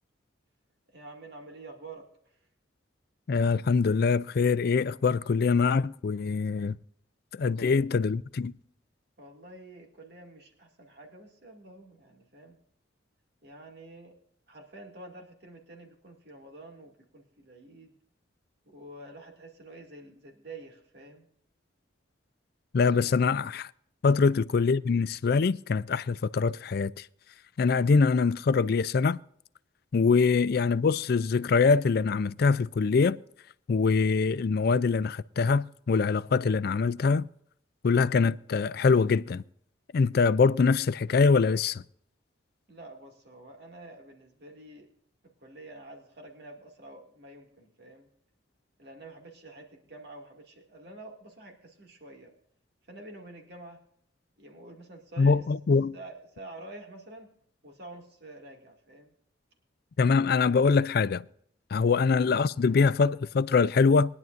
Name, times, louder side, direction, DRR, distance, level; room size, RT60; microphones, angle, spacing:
voice 1, 0.9-2.5 7.4-7.8 9.2-12.6 13.4-14.2 14.5-17.9 18.7-21.3 23.0-23.2 24.1-24.3 30.2-30.3 42.7-44.9 45.2-48.1 48.8-52.3 52.9-53.8 54.4-55.4 55.9-57.3 57.6-59.1 61.8-62.0, right 2 dB, 55° right, 2.3 m, -48 dB
voice 2, 3.3-6.8 7.3-8.5 22.7-23.7 24.0-27.1 27.6-29.2 29.9-33.2 33.7-37.3 37.8-39.4 39.9-41.8 55.2-55.9 60.0-61.2 61.7-64.2, left 4 dB, 50° left, 0.4 m, -24 dB
21.5 x 10.5 x 2.6 m
head